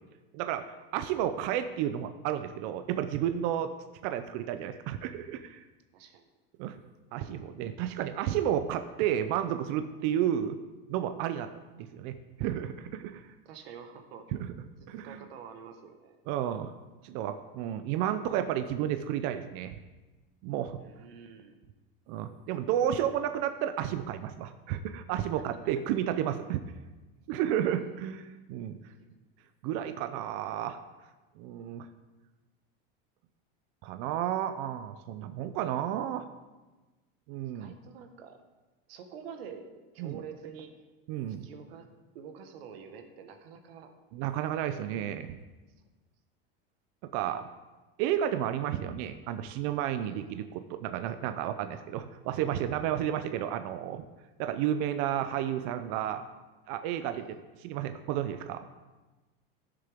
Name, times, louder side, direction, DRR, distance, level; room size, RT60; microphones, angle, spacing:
voice 1, 0.3-3.7 4.0-5.6 6.6-6.8 7.1-10.6 10.9-13.2 14.3-14.5 14.9-15.2 16.3-16.7 17.0-19.7 20.4-20.8 22.1-26.6 27.3-28.8 29.6-30.8 31.4-31.9 33.8-36.3 37.3-37.7 40.0-40.2 41.1-41.5 44.1-45.4 47.1-47.5 48.0-54.0 54.4-56.2 56.7-57.2 57.6-58.6, right 10 dB, 45° right, 9 dB, 0.4 m, -32 dB
voice 2, 5.9-6.3 13.4-14.3 14.8-16.2 20.8-21.6 27.7-27.9 28.8-29.1 31.6-31.7 37.5-38.4 38.9-39.7 39.9-40.7 41.4-41.9 42.1-43.9 50.0-50.3 57.1-57.4, right 7 dB, 85° right, 6 dB, 1.3 m, -47 dB
14.5 x 6.7 x 3.5 m, 1.2 s
supercardioid pair, 165°, 30 cm